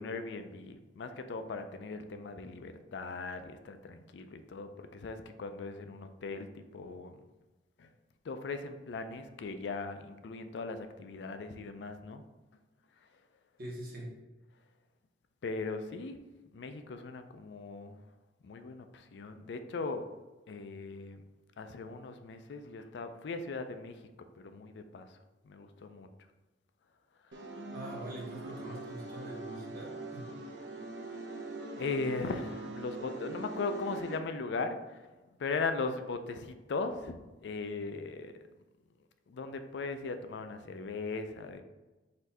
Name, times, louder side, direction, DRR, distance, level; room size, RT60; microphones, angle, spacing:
voice 1, 0.0-7.2 7.8-7.9 8.3-12.2 15.4-16.2 16.5-17.9 18.4-20.1 20.5-21.2 21.6-24.0 24.4-25.1 25.4-26.1 31.8-35.0 35.4-38.3 39.3-41.6, left 3 dB, 80° left, 8 dB, 0.4 m, -38 dB
voice 2, 13.6-14.1 27.7-30.2, right 1 dB, 55° right, -4 dB, 1.3 m, -43 dB
sound 1, 27.3-34.2, right 2 dB, 90° right, 0.6 m, -43 dB
4.2 x 2.7 x 4.2 m, 1.1 s
head